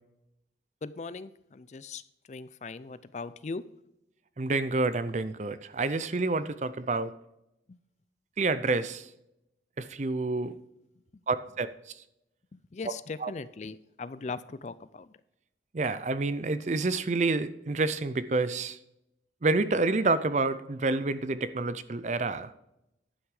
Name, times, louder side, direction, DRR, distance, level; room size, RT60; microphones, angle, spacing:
voice 1, 0.8-2.0 2.3-3.6 7.7-7.8 12.5-15.1, left 4 dB, 40° left, 16 dB, 0.4 m, -39 dB
voice 2, 4.4-7.1 8.4-9.1 9.8-10.6 11.3-11.7 12.8-12.9 13.2-13.3 15.7-18.8 19.4-22.5, right 3 dB, 40° right, 14 dB, 0.5 m, -28 dB
11.0 x 6.2 x 4.8 m, 0.85 s
head